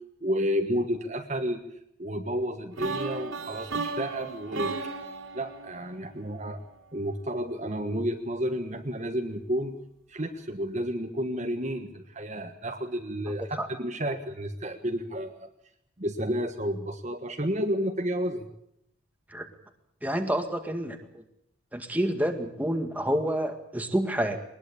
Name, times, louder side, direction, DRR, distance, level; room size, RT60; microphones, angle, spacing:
voice 1, 0.2-1.6 2.0-4.7 5.3-6.6 6.9-9.8 10.1-15.5 16.0-18.5, equal, 35° right, 5 dB, 1.5 m, -31 dB
sound 1, 2.8-6.7, right 3 dB, 75° right, 3.5 m, -35 dB
voice 2, 20.0-21.2 21.7-24.4, right 1 dB, 10° right, 5 dB, 2.0 m, -28 dB
22.0 x 20.5 x 8.6 m, 0.77 s
head